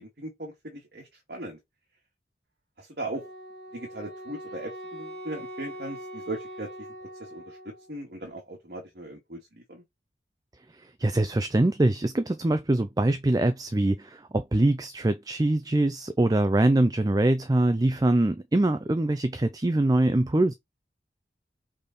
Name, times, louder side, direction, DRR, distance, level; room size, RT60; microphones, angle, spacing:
voice 1, 0.0-1.6 2.8-3.3 3.7-6.9 7.2-9.8, right 1 dB, 65° right, 2.3 m, -38 dB
Wind instrument woodwind instrument, 3.1-7.9, equal, 85° right, 2.0 m, -42 dB
voice 2, 10.8-20.5, right 1 dB, 20° right, 0.4 m, -23 dB
5.2 x 4.1 x 5.3 m
head